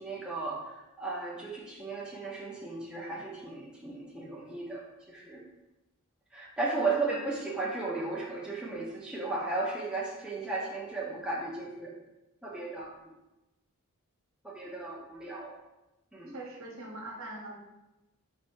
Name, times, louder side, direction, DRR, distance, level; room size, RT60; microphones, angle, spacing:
voice 1, 0.0-5.4 6.3-11.9 12.4-12.9 14.4-15.6 16.1-16.4, right 3 dB, 5° right, -5 dB, 0.5 m, -35 dB
voice 2, 6.8-7.1 16.3-17.5, right 2 dB, 60° right, -1 dB, 0.9 m, -42 dB
4.3 x 2.6 x 4.4 m, 0.97 s
head